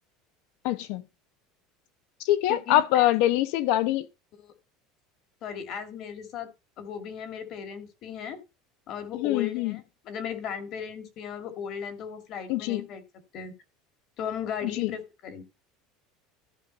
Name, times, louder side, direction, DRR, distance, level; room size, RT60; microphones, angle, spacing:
voice 1, 0.6-1.0 2.2-4.1 9.1-9.8 12.5-12.9 14.6-14.9, left 14 dB, 65° left, 0.8 m, -24 dB
voice 2, 2.5-3.1 4.4-4.5 5.4-6.5 6.8-8.4 8.9-13.0 13.3-13.5 14.2-15.4, left 8 dB, 40° left, 1.9 m, -36 dB
14.0 x 5.3 x 4.0 m
cardioid pair, 160°, 0 cm